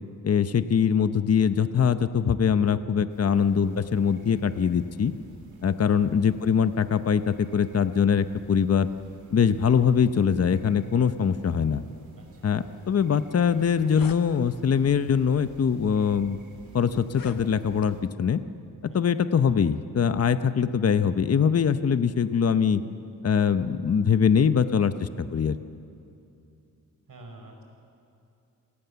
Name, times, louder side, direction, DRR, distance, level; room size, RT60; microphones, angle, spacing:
voice 1, 0.2-5.1 5.6-8.9 9.3-11.8 12.4-16.4 16.7-18.4 18.9-22.8 23.2-25.6, left 7 dB, 45° left, 12 dB, 0.8 m, -23 dB
sound 1, 3.1-18.0, right 4 dB, 90° right, 3.5 m, -53 dB
sound 2, 13.6-14.2 15.1-15.3 16.0-16.1 17.0-17.9, left 5 dB, 70° left, 1.5 m, -43 dB
voice 2, 27.1-27.6, right 2 dB, 65° right, 2 dB, 4.8 m, -47 dB
28.5 x 18.5 x 7.0 m, 2.6 s
wide cardioid pair, 110°, 35 cm